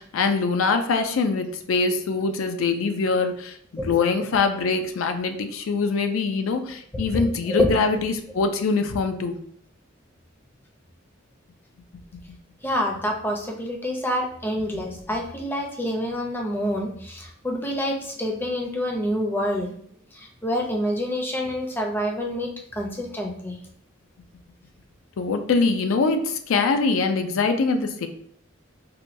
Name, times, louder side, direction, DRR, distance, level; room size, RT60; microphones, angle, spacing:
voice 1, 0.0-3.6 3.8-9.4 25.2-28.1, left 4 dB, 80° left, 7 dB, 0.4 m, -23 dB
voice 2, 7.1-7.8 12.6-19.7 20.1-23.6, equal, 10° left, 0 dB, 0.5 m, -27 dB
4.2 x 2.2 x 2.6 m, 0.63 s
head